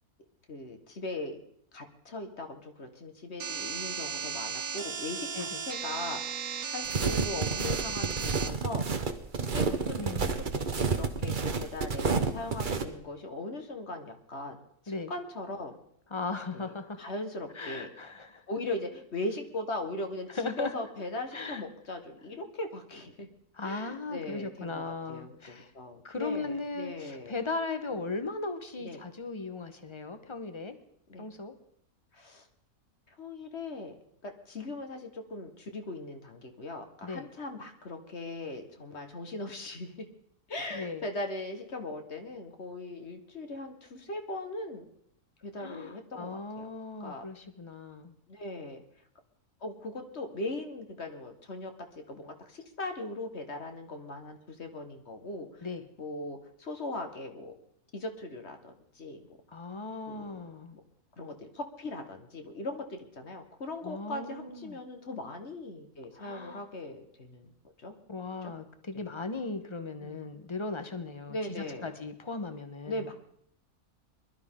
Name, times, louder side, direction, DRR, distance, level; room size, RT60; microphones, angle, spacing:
voice 1, 0.5-1.4 1.7-6.2 6.7-8.8 9.5-14.6 15.1-15.8 16.5-17.9 18.5-23.3 23.6-27.4 28.8-29.0 31.1-31.3 32.1-32.5 33.1-33.9 34.2-40.1 40.5-44.8 45.4-46.7 47.0-47.2 48.3-48.8 49.6-55.7 56.0-57.5 57.9-59.2 60.1-60.4 60.7-60.8 61.2-67.5 67.8-67.9 68.4-68.5 70.0-70.2 71.3-71.9 72.9-73.1, left 2 dB, 50° left, 5 dB, 1.7 m, -39 dB
sound 1, 3.4-8.5, right 6 dB, 85° right, 1.5 m, -35 dB
sound 2, 6.8-12.8, right 5 dB, 40° right, 1.0 m, -30 dB
voice 2, 10.0-10.3 14.9-15.1 16.1-17.0 17.5-18.4 20.3-20.7 21.3-21.6 23.5-25.7 26.0-30.8 31.2-31.5 37.0-37.3 40.7-41.0 45.6-48.1 55.6-55.9 59.5-60.8 63.8-64.8 66.1-66.7 68.1-73.1, left 3 dB, 25° left, 9 dB, 1.0 m, -37 dB
21.5 x 12.5 x 3.7 m, 0.69 s
omnidirectional pair, 1.5 m